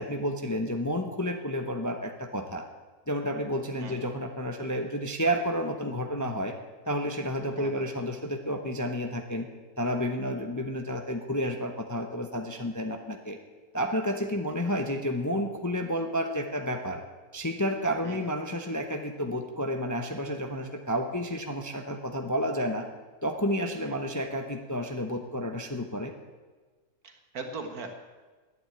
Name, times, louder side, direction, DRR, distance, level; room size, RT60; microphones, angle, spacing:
voice 1, 0.0-2.6 3.1-6.5 6.9-9.5 9.8-13.4 13.7-17.0 17.3-22.8 23.2-26.1, equal, 15° left, 4 dB, 0.6 m, -31 dB
voice 2, 3.8-4.1 7.6-7.9 18.0-18.2 23.9-24.0 27.0-27.9, right 4 dB, 75° right, 5 dB, 1.9 m, -40 dB
11.0 x 9.2 x 8.7 m, 1.3 s
omnidirectional pair, 1.6 m